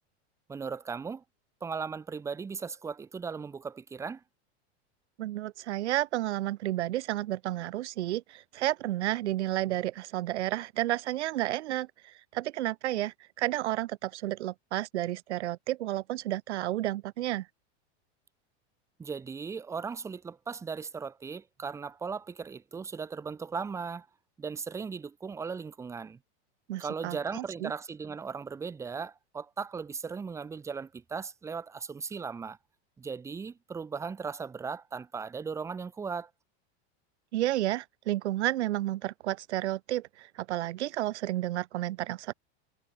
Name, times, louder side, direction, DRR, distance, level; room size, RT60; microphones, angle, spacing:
voice 1, 0.5-1.2 1.6-4.2 19.0-24.1 24.4-26.2 26.8-32.6 33.0-36.3, right 5 dB, 10° right, 0.6 m, -37 dB
voice 2, 5.2-17.5 26.7-27.7 37.3-42.3, right 15 dB, 90° right, 1.6 m, -31 dB
supercardioid pair, 150°, 33 cm